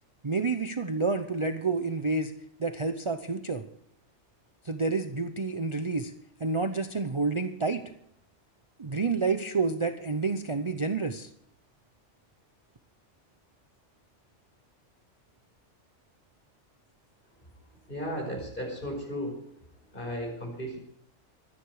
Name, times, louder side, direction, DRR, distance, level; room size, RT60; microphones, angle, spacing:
voice 1, 0.2-2.3 2.6-3.6 4.6-6.1 6.4-7.8 8.8-11.3, right 4 dB, 30° right, 8 dB, 0.7 m, -29 dB
voice 2, 17.9-19.4 19.9-20.8, equal, 45° left, 2 dB, 5.1 m, -34 dB
24.0 x 10.0 x 4.8 m, 0.71 s
omnidirectional pair, 1.2 m